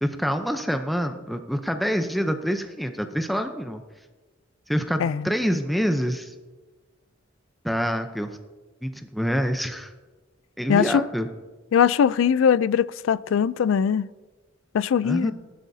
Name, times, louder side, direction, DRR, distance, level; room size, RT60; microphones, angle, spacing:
voice 1, 0.0-3.8 4.7-6.3 7.6-8.4 8.8-9.9 10.6-11.3 15.0-15.3, equal, ahead, 0.6 m, -26 dB
voice 2, 10.7-11.0 11.7-14.1 14.7-15.3, left 7 dB, 80° left, 0.3 m, -21 dB
18.5 x 12.0 x 2.7 m
head